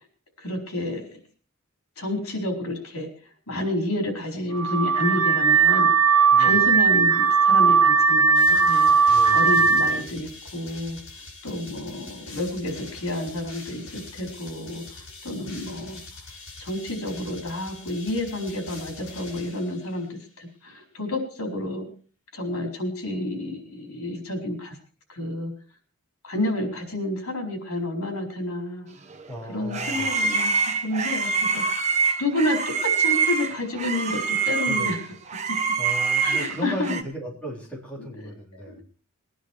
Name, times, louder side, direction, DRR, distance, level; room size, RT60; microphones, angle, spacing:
voice 1, 0.4-1.2 2.0-3.1 3.5-5.9 6.4-11.0 11.4-16.0 16.6-21.9 22.3-24.8 25.1-25.5 26.2-28.9 29.5-30.5 30.8-31.6 32.2-35.0 35.5-35.6 36.2-37.0 38.5-38.8, left 1 dB, 80° left, 3 dB, 4.6 m, -30 dB
Car / Alarm, 4.5-10.0, right 5 dB, 85° right, 0.8 m, -18 dB
voice 2, 6.3-6.7 9.1-9.8 29.3-30.1 34.7-35.0 35.8-38.8, equal, 5° left, -3 dB, 3.8 m, -36 dB
sound 1, 8.3-20.2, left 3 dB, 65° left, 6.0 m, -43 dB
sound 2, 29.1-37.0, right 5 dB, 30° right, 1.2 m, -25 dB
20.5 x 10.0 x 4.6 m, 0.39 s
head